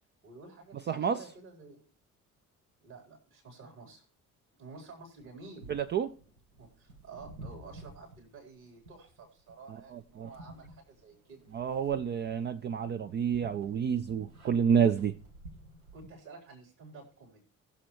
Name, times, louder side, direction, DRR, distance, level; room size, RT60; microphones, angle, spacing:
voice 1, 0.2-1.8 2.8-4.0 4.6-5.6 6.6-11.5 15.9-17.4, right 3 dB, 60° right, 4.0 m, -51 dB
voice 2, 0.9-1.2 5.7-6.1 9.9-10.3 11.5-15.2, right 7 dB, 25° right, 0.4 m, -29 dB
sound 1, 5.2-16.1, right 1 dB, 85° right, 1.1 m, -52 dB
20.0 x 6.7 x 3.0 m
figure-of-eight pair, 50°, 42 cm